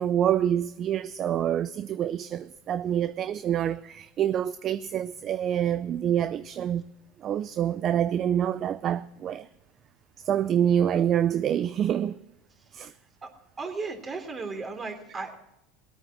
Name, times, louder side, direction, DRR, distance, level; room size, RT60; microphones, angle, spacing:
voice 1, 0.0-6.8 7.2-9.5 10.2-12.2 12.7-12.9, right 10 dB, 45° right, 0.5 m, -26 dB
voice 2, 13.6-15.4, right 4 dB, 25° right, 3.2 m, -35 dB
20.0 x 8.8 x 6.0 m
hypercardioid pair, 95°, 0 cm